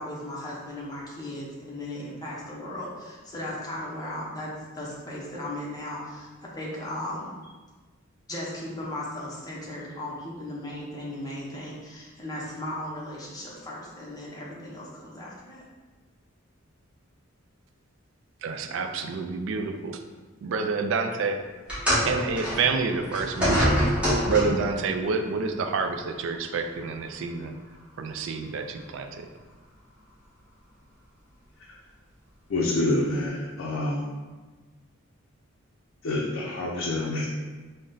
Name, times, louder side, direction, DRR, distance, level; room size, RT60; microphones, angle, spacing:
voice 1, 0.0-7.3 8.3-15.6, left 1 dB, 20° left, -5 dB, 0.8 m, -36 dB
voice 2, 18.4-20.0 20.4-21.4 22.0-23.9 24.2-27.5 28.0-29.3, right 4 dB, 70° right, 6 dB, 0.3 m, -28 dB
sound 1, 21.7-24.7 25.7-25.9 26.8-26.9, equal, 5° right, 1.3 m, -25 dB
voice 3, 32.5-34.1 36.0-37.2, left 2 dB, 65° left, -3 dB, 0.5 m, -27 dB
3.8 x 2.1 x 3.8 m, 1.3 s
head